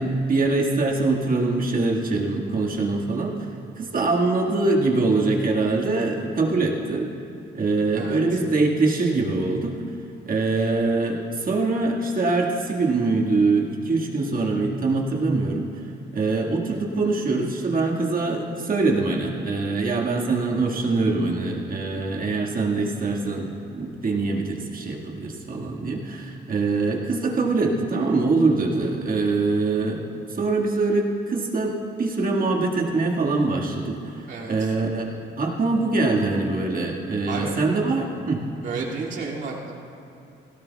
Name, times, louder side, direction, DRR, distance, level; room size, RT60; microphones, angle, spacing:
voice 1, 0.0-3.5 3.8-7.1 7.5-9.8 10.3-15.8 16.1-30.0 30.3-38.5, right 3 dB, 45° right, -1 dB, 1.9 m, -23 dB
voice 2, 7.9-8.4 34.3-34.8 37.3-37.6 38.6-39.7, right 4 dB, 65° right, -4 dB, 2.5 m, -32 dB
17.0 x 17.0 x 2.4 m, 3.0 s
cardioid pair, 90°, 20 cm